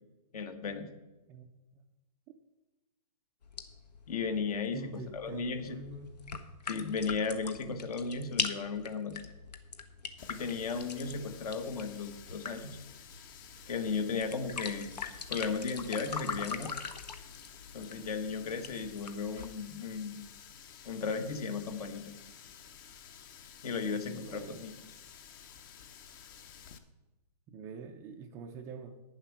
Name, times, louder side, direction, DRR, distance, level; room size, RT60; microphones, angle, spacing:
voice 1, 0.3-0.9 4.1-5.8 6.7-9.2 10.3-12.8 13.7-16.7 17.7-20.2 20.8-22.1 23.6-24.7, left 5 dB, 65° left, 8 dB, 1.4 m, -35 dB
sound 1, 3.4-19.5, left 5 dB, 80° left, 1.1 m, -42 dB
voice 2, 4.7-6.2 23.9-24.7 27.5-28.9, right 4 dB, 15° right, 5 dB, 0.4 m, -45 dB
Water tap faucet, 10.2-26.8, left 8 dB, 30° left, 0.7 m, -52 dB
9.8 x 7.3 x 6.2 m, 1.1 s
hypercardioid pair, 150°, 21 cm